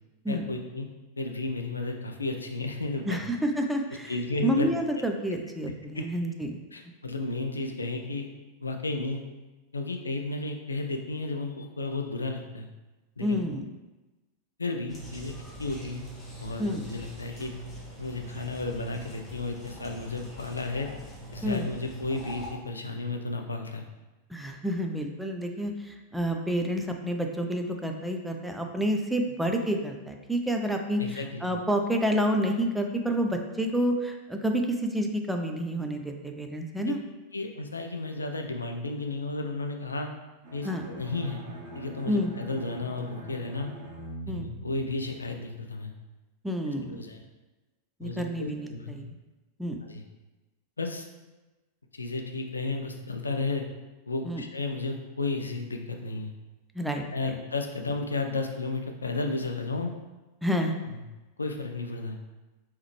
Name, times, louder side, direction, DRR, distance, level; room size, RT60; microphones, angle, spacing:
voice 1, 0.3-0.9 1.2-3.2 4.1-4.7 5.9-6.0 6.7-8.3 8.6-9.2 9.7-12.7 13.2-13.4 14.6-15.3 15.6-16.1 16.4-17.5 18.0-20.9 21.3-23.9 31.0-31.5 36.8-36.9 37.3-40.1 40.5-41.4 41.7-43.7 44.3-45.9 46.8-47.2 48.0-49.0 49.8-50.0 50.8-51.1 51.9-53.6 54.1-56.3 57.1-59.9 60.9-61.0 61.4-62.2, left 3 dB, 75° left, 4 dB, 0.4 m, -33 dB
voice 2, 3.0-4.1 4.4-6.5 13.2-13.6 16.6-16.8 21.4-21.7 24.3-37.0 40.6-40.9 42.1-42.3 44.3-44.5 46.4-47.0 48.0-49.1 49.6-49.8 54.2-54.4 56.7-57.3 60.4-60.7, equal, 5° right, 3 dB, 0.4 m, -29 dB
sound 1, 14.9-22.5, equal, 15° left, 1.1 m, -43 dB
Bowed string instrument, 40.4-45.5, right 2 dB, 50° right, 1.1 m, -44 dB
3.6 x 3.1 x 3.2 m, 1.1 s
figure-of-eight pair, 90°, 0 cm